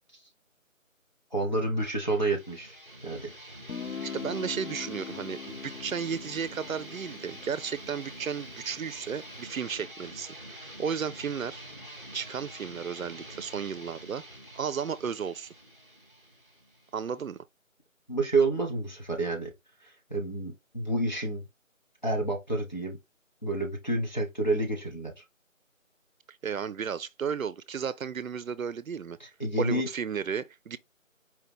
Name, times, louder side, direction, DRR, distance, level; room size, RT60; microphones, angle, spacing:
voice 1, 1.3-2.8 3.0-3.3 18.1-19.5 19.8-21.4 22.0-23.0 23.4-25.2 29.2-29.9, right 2 dB, 35° left, 1.1 m, -29 dB
sound 1, 2.0-17.4, right 1 dB, 40° right, 0.9 m, -46 dB
Guitar, 3.7-9.2, left 6 dB, 80° left, 0.8 m, -42 dB
voice 2, 4.1-11.7 12.1-14.2 14.6-15.5 16.9-17.4 26.4-29.2 29.6-30.8, right 7 dB, 80° right, 0.5 m, -34 dB
4.6 x 2.8 x 3.4 m
figure-of-eight pair, 175°, 40 cm